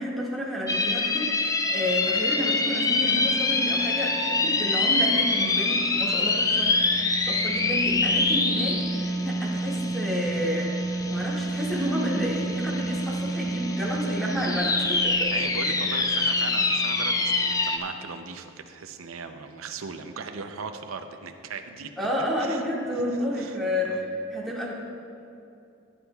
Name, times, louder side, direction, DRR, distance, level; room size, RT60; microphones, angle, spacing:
voice 1, 0.0-6.8 7.3-15.3 22.0-24.7, equal, ahead, -6 dB, 1.9 m, -30 dB
sound 1, 0.7-17.8, left 2 dB, 15° left, 0.5 m, -25 dB
voice 2, 15.1-21.9 22.4-23.6 23.9-24.0, right 5 dB, 85° right, 6 dB, 0.6 m, -38 dB
16.5 x 9.7 x 2.3 m, 2.7 s
head